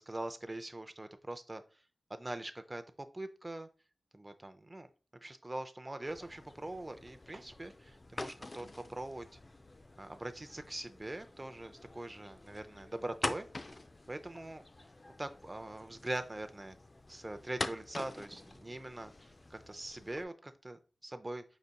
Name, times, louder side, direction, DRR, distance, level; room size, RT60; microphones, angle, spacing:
voice 1, 0.0-1.6 2.1-3.7 4.1-4.9 5.2-9.3 10.0-13.5 14.1-14.6 15.2-16.8 17.1-21.4, right 1 dB, 25° right, 9 dB, 0.5 m, -42 dB
sound 1, 6.1-20.2, left 2 dB, 35° left, 0.4 m, -46 dB
4.9 x 4.1 x 2.2 m, 0.34 s
wide cardioid pair, 65°, 0 cm